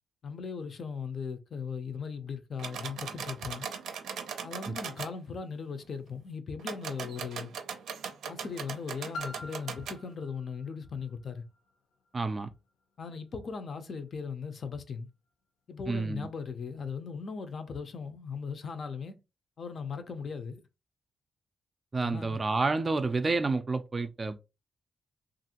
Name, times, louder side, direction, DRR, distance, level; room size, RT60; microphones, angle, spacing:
voice 1, 0.2-3.7 4.4-7.5 8.3-11.4 13.0-15.1 15.7-19.1 19.6-20.6 22.0-22.4, left 5 dB, 50° left, 0.5 m, -38 dB
sound 1, 2.6-5.1 6.6-10.0, right 7 dB, 90° right, 0.5 m, -39 dB
Piano, 9.1-14.6 15.3-15.4, left 2 dB, 85° left, 0.7 m, -48 dB
voice 2, 12.1-12.5 15.9-16.3 21.9-24.4, right 3 dB, 30° right, 0.3 m, -29 dB
3.0 x 2.5 x 2.8 m
cardioid pair, 125°, 0 cm